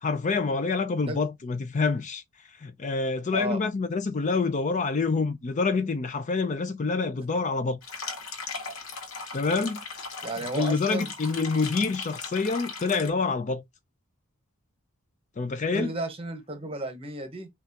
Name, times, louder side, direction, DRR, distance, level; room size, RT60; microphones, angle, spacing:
voice 1, 0.0-2.2 2.6-7.8 9.3-9.8 10.5-13.6 15.4-15.9, left 4 dB, 35° left, 0.4 m, -27 dB
sound 1, 7.8-13.1, left 4 dB, 75° left, 1.0 m, -38 dB
voice 2, 10.2-11.1 15.7-17.5, right 2 dB, 25° right, 1.0 m, -33 dB
5.9 x 2.4 x 2.8 m
head